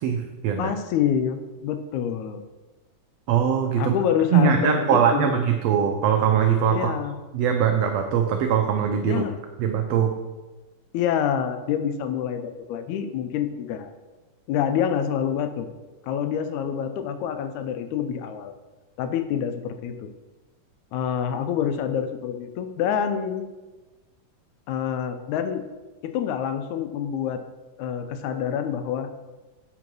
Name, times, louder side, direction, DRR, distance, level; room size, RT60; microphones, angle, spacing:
voice 1, 0.0-0.7 3.3-4.0 4.3-7.0 7.3-9.2 9.6-10.1, right 8 dB, 85° right, 4 dB, 1.4 m, -21 dB
voice 2, 0.6-2.5 3.8-5.5 6.7-7.2 9.0-9.4 10.9-13.9 14.5-15.7 16.0-18.5 19.0-20.0 20.9-23.5 24.7-25.6 26.0-27.4 27.8-29.1, left 8 dB, 80° left, 8 dB, 1.9 m, -27 dB
7.8 x 3.7 x 6.0 m, 1.2 s
omnidirectional pair, 3.5 m